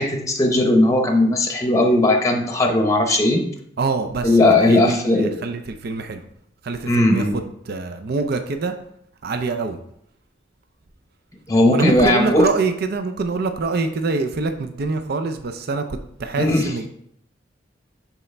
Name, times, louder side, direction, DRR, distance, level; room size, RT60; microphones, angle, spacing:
voice 1, 0.0-3.4 4.2-5.3 6.9-7.4 11.5-12.5 16.3-16.7, left 1 dB, 20° left, 4 dB, 0.8 m, -17 dB
voice 2, 3.8-6.2 6.6-8.7 9.2-9.8 11.7-16.9, right 3 dB, 55° right, 7 dB, 0.5 m, -25 dB
8.1 x 4.2 x 3.3 m, 0.71 s
head